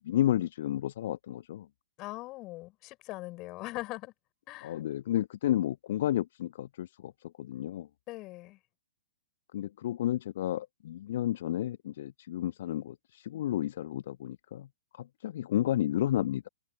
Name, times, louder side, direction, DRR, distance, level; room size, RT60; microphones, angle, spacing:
voice 1, 0.0-1.7 4.6-7.1 7.4-7.9 9.5-14.7 14.9-16.5, left 12 dB, 50° left, 1.8 m, -31 dB
voice 2, 2.0-4.1 4.5-4.8 8.1-8.6, left 20 dB, 30° left, 6.8 m, -41 dB
figure-of-eight pair, 115°, 0 cm